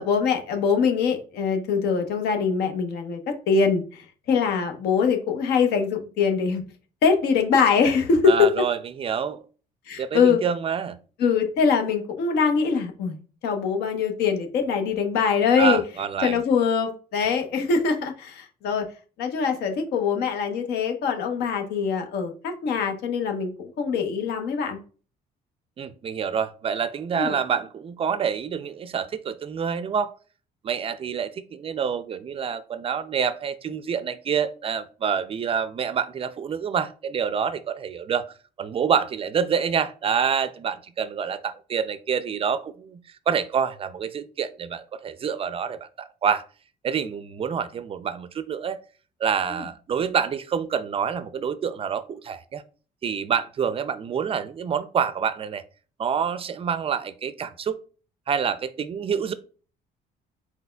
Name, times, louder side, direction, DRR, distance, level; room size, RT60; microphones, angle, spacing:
voice 1, 0.0-6.6 7.0-8.5 9.9-10.4 11.2-13.2 13.4-15.8 16.2-18.9 19.2-24.8 27.2-27.3 49.5-49.7, left 6 dB, 75° left, 5 dB, 0.9 m, -23 dB
voice 2, 8.3-9.4 10.0-11.0 15.6-16.4 25.8-30.1 30.6-38.3 38.6-43.0 43.3-45.9 46.2-46.4 46.8-48.8 49.2-52.6 53.0-55.6 56.0-57.8 58.3-59.3, right 7 dB, 35° right, 14 dB, 0.4 m, -27 dB
4.2 x 4.1 x 2.2 m, 0.38 s
cardioid pair, 110°, 17 cm